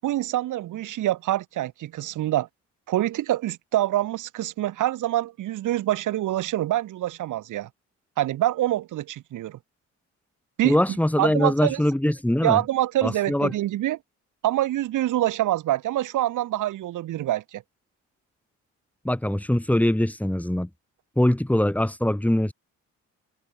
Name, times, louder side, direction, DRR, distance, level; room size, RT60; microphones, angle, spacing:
voice 1, 0.0-2.5 2.9-7.7 8.2-9.6 10.6-11.8 12.4-14.0 14.4-17.6, right 14 dB, 85° right, 7.3 m, -25 dB
voice 2, 10.6-12.6 13.0-13.5 19.0-20.7 21.2-22.5, left 1 dB, 5° left, 5.9 m, -22 dB
cardioid pair, 90°, 30 cm